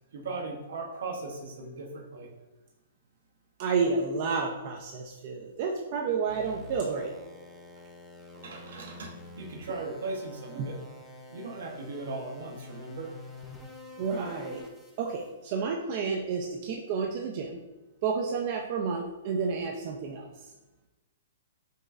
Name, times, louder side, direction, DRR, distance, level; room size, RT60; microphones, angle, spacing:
voice 1, 0.1-2.3 8.3-10.8 11.3-13.1, right 3 dB, 70° right, 1 dB, 0.9 m, -38 dB
voice 2, 3.6-7.1 10.6-10.7 14.0-14.6 15.0-17.6 18.0-20.3, right 5 dB, 45° right, 1 dB, 0.5 m, -30 dB
sound 1, 6.3-15.3, left 3 dB, 5° left, 0.6 m, -48 dB
5.2 x 3.0 x 2.4 m, 1.1 s
hypercardioid pair, 135°, 0 cm